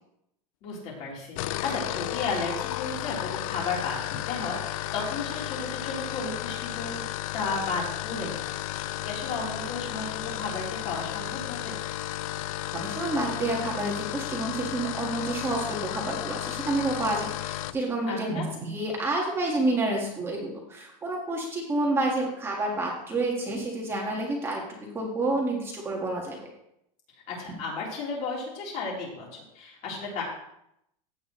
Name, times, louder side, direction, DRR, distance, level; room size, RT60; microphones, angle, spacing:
voice 1, 0.6-11.8 18.1-18.5 27.3-30.2, left 4 dB, 40° left, -3 dB, 3.9 m, -34 dB
sound 1, 1.2-17.8, left 14 dB, 65° left, 0.5 m, -33 dB
voice 2, 12.7-24.6 24.9-26.4, right 2 dB, 15° right, -1 dB, 1.8 m, -29 dB
15.5 x 8.7 x 3.2 m, 0.78 s
supercardioid pair, 165°, 19 cm